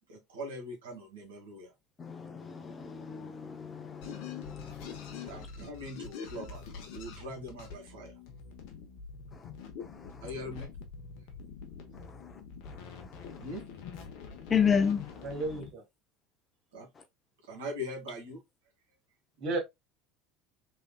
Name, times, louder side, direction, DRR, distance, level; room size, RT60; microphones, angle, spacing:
voice 1, 0.1-1.7 5.2-8.1 10.2-10.7 13.4-13.7 16.7-16.9 17.4-18.4, left 1 dB, 80° right, 1.7 m, -41 dB
voice 2, 2.0-5.2 14.5-15.0, left 7 dB, 30° left, 0.8 m, -31 dB
sound 1, 4.0-15.7, left 6 dB, 65° left, 0.9 m, -45 dB
voice 3, 11.7-12.1 15.2-15.8 19.4-19.6, right 2 dB, 55° right, 2.0 m, -34 dB
3.6 x 3.4 x 2.2 m
hypercardioid pair, 75°, 0 cm